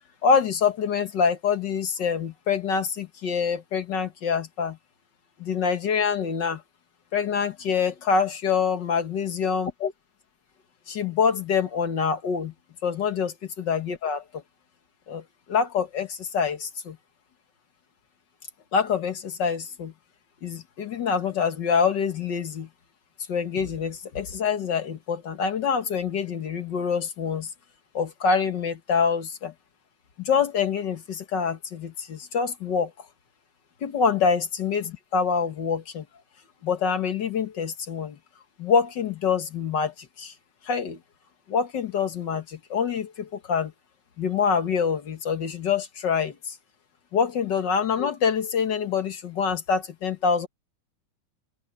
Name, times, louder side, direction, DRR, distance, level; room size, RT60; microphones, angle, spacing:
voice 1, 0.2-4.8 5.4-6.6 7.1-9.9 10.9-12.5 12.8-14.4 15.1-15.2 15.5-17.0 18.7-19.9 20.4-22.7 23.3-27.5 27.9-29.5 30.2-32.9 33.8-36.0 36.6-38.2 38.6-40.3 40.7-41.0 41.5-43.7 44.2-46.5 47.1-50.5, left 6 dB, 50° left, 1.5 m, -25 dB
open air
omnidirectional pair, 3.4 m